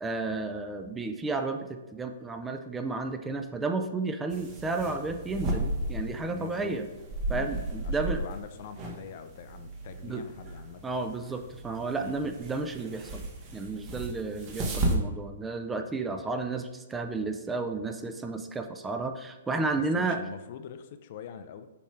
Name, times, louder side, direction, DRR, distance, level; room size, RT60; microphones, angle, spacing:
voice 1, 0.0-6.9 7.3-8.2 10.0-10.2 10.8-20.2, right 3 dB, 10° right, 6 dB, 0.5 m, -32 dB
sound 1, 4.3-14.9, right 1 dB, 30° right, 1.1 m, -35 dB
voice 2, 6.3-6.8 7.3-10.8 12.0-12.3 19.9-21.7, left 7 dB, 50° left, 9 dB, 0.5 m, -43 dB
7.0 x 4.2 x 3.2 m, 1.1 s
hypercardioid pair, 125°, 0 cm